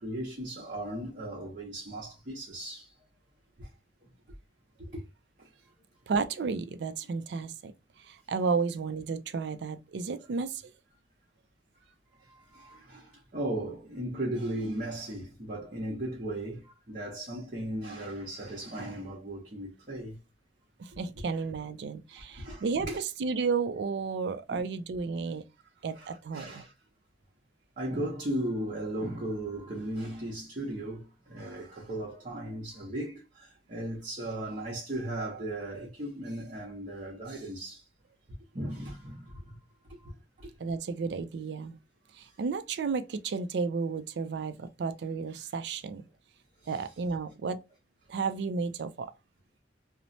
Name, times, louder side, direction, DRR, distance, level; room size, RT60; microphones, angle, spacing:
voice 1, 0.0-2.9 3.6-3.7 4.0-4.1 4.8-5.0 5.4-5.5 11.7-11.8 12.2-20.2 22.1-23.0 24.5-24.6 25.9-26.7 27.8-37.8 38.5-39.6 39.8-40.5 46.6-46.7, right 1 dB, 45° right, 0.8 m, -37 dB
voice 2, 6.1-7.7 8.0-10.7 20.8-25.4 25.8-26.6 40.6-41.8 42.1-46.1 46.7-47.6 48.1-49.1, right 4 dB, 65° right, 0.4 m, -32 dB
3.0 x 2.0 x 2.6 m
head